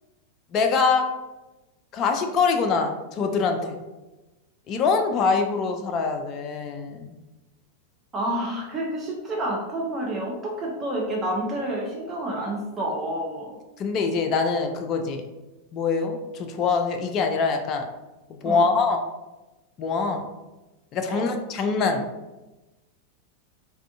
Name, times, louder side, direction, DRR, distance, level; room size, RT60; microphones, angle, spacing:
voice 1, 0.5-1.1 1.9-3.6 4.7-7.1 13.8-15.2 15.7-17.9 18.4-19.0 19.8-20.3 20.9-22.0, left 4 dB, 35° left, 5 dB, 0.3 m, -24 dB
voice 2, 8.1-13.6 18.4-18.7 21.1-21.3, right 1 dB, 25° right, -2 dB, 0.6 m, -29 dB
3.4 x 2.4 x 2.4 m, 1.1 s
figure-of-eight pair, 90°, 0 cm